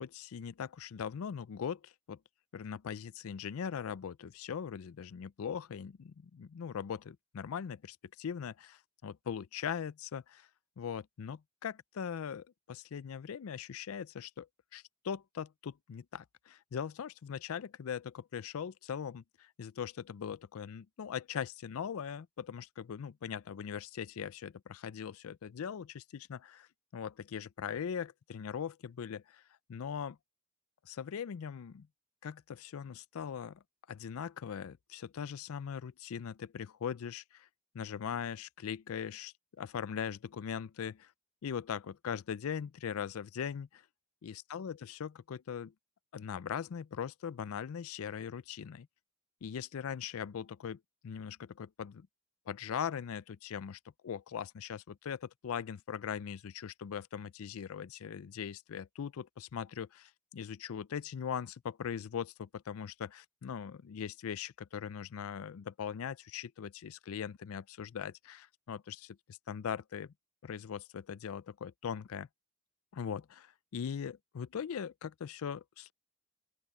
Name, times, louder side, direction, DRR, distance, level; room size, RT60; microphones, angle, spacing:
voice 1, 0.0-2.2 2.5-10.5 10.8-14.5 14.7-26.7 26.9-29.4 29.7-30.2 30.8-31.9 32.2-33.6 33.9-37.5 37.7-41.1 41.4-43.8 44.2-45.7 46.1-48.9 49.4-52.1 52.5-70.1 70.4-72.3 72.9-75.9, left 7 dB, 75° left, 0.4 m, -40 dB
open air
head